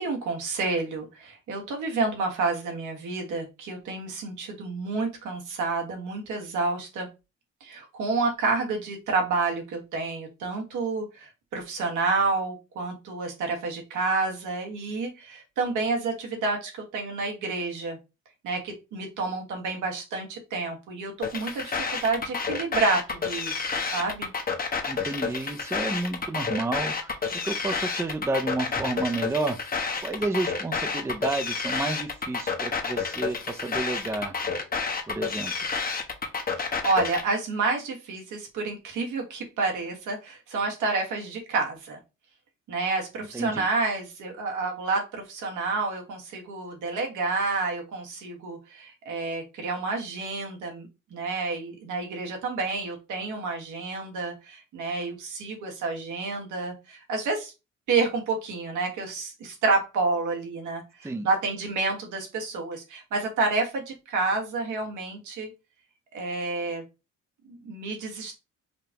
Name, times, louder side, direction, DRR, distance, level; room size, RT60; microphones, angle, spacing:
voice 1, 0.0-7.1 7.6-18.0 18.4-24.3 36.6-42.0 42.7-57.5 57.9-65.5 66.1-66.8 67.5-68.4, right 3 dB, 80° right, 1.5 m, -29 dB
sound 1, 21.2-37.2, left 5 dB, 30° left, 0.9 m, -30 dB
voice 2, 24.9-29.6 30.0-34.3 35.1-35.5 43.3-43.6 61.0-61.3, right 2 dB, 10° right, 0.5 m, -30 dB
5.0 x 2.2 x 2.9 m
cardioid pair, 90°, 30 cm